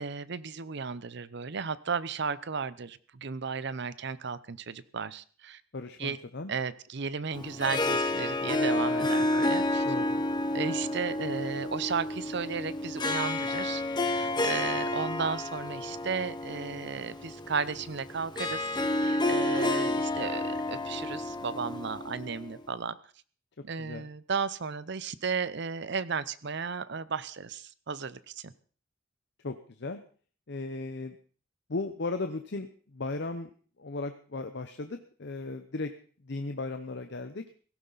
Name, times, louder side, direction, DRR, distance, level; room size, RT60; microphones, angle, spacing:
voice 1, 0.0-5.6 6.0-6.2 6.5-9.8 10.5-23.0 23.6-28.5, right 5 dB, 60° right, 16 dB, 0.7 m, -34 dB
voice 2, 5.7-6.5 9.8-10.2 23.8-24.1 29.4-30.0 30.5-31.2 31.7-33.5 33.8-35.9 36.2-37.4, left 3 dB, 60° left, 8 dB, 0.8 m, -36 dB
Harp, 7.3-22.6, left 2 dB, 20° left, 1.3 m, -30 dB
17.0 x 15.5 x 4.1 m, 0.43 s
head